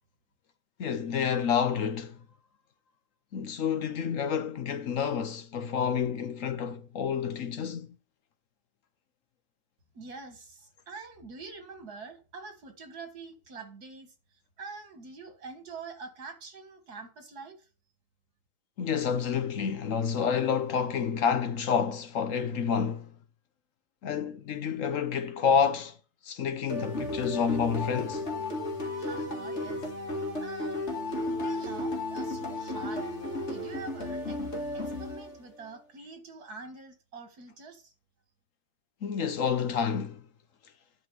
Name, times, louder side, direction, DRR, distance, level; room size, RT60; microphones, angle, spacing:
voice 1, 0.8-2.2 3.3-7.9 18.8-23.1 24.0-26.0 26.2-28.3 39.0-40.2, left 7 dB, 60° left, 1.1 m, -29 dB
voice 2, 9.9-14.1 14.6-17.6 29.0-29.9 30.4-33.1 33.5-34.4 34.7-37.9, right 4 dB, 80° right, 2.3 m, -45 dB
sound 1, 26.7-35.6, left 2 dB, 45° left, 2.3 m, -34 dB
11.0 x 4.5 x 6.3 m
omnidirectional pair, 1.6 m